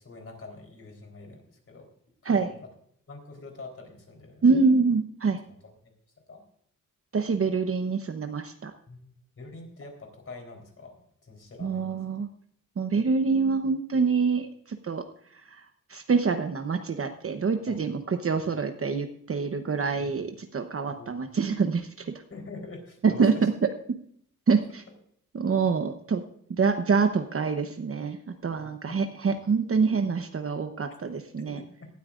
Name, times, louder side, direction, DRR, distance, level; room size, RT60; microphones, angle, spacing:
voice 1, 0.0-1.9 2.2-2.7 3.1-4.7 5.5-5.9 6.3-6.4 8.9-10.9 11.2-11.9 17.7-17.8 18.4-18.5 20.0-20.2 20.9-21.2 22.3-23.5 28.6-29.0 31.5-31.9, left 3 dB, 45° left, 3 dB, 3.9 m, -45 dB
voice 2, 4.4-5.4 7.1-8.7 11.6-12.3 12.8-15.0 15.9-22.1 23.0-23.5 24.5-24.8 25.3-26.2 26.6-31.6, right 4 dB, 45° right, 6 dB, 0.9 m, -26 dB
18.0 x 13.0 x 2.5 m, 0.65 s
wide cardioid pair, 110°, 33 cm